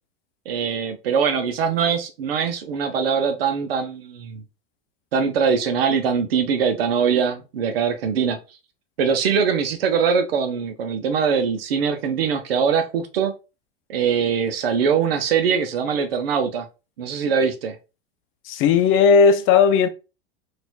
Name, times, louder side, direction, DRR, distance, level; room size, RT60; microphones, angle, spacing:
voice 1, 0.5-4.4 5.1-8.4 9.0-13.3 13.9-16.7 17.0-17.8, right 6 dB, 80° right, 0.7 m, -22 dB
voice 2, 18.5-19.9, left 6 dB, 45° left, 0.6 m, -15 dB
4.2 x 2.5 x 2.4 m
hypercardioid pair, 100°, 29 cm